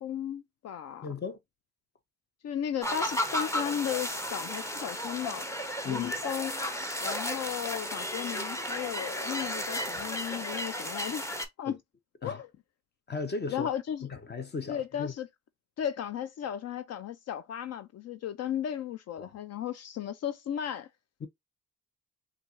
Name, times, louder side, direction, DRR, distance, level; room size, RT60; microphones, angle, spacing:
voice 1, 0.0-1.1 2.4-5.5 5.8-6.5 7.0-11.3 11.6-11.8 12.2-12.5 13.5-14.1 14.7-15.3 15.8-20.9, left 9 dB, 55° left, 0.5 m, -35 dB
voice 2, 1.0-1.4 5.8-6.2 11.6-11.8 12.2-12.4 13.1-13.7 14.1-15.1 19.2-19.3 21.2-21.3, left 4 dB, 35° left, 0.9 m, -36 dB
sound 1, 2.8-11.5, equal, 10° left, 0.8 m, -34 dB
4.5 x 2.4 x 2.5 m
cardioid pair, 90°, 30 cm